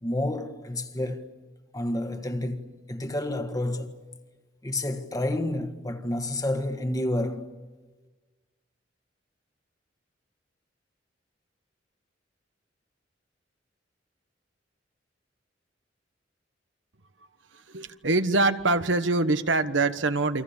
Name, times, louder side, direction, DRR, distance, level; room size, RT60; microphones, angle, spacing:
voice 1, 0.0-1.3 1.7-4.0 4.6-7.5, left 1 dB, 20° left, 1.6 m, -30 dB
voice 2, 17.5-20.4, right 2 dB, 85° right, 1.3 m, -24 dB
29.0 x 24.5 x 7.2 m
head